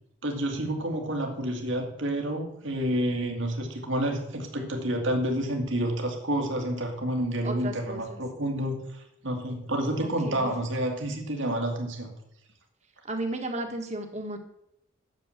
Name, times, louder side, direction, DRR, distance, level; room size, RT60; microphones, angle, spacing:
voice 1, 0.2-12.1, right 1 dB, 70° right, 2 dB, 2.1 m, -29 dB
voice 2, 7.4-8.2 10.0-10.5 13.0-14.4, right 1 dB, 35° right, 4 dB, 1.6 m, -34 dB
9.5 x 7.1 x 7.4 m, 0.79 s
head